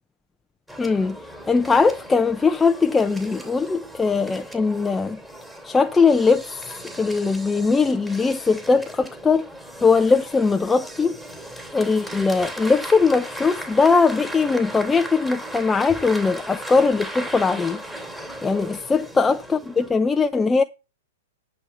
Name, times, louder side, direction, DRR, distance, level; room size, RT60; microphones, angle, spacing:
sound 1, 0.7-19.9, right 1 dB, 5° right, 2.7 m, -37 dB
voice 1, 0.8-1.2 1.5-5.2 5.6-6.5 7.0-9.5 9.8-11.2 11.7-17.8 18.4-20.6, left 4 dB, 10° left, 0.6 m, -20 dB
11.0 x 6.4 x 4.3 m
hypercardioid pair, 115°, 0 cm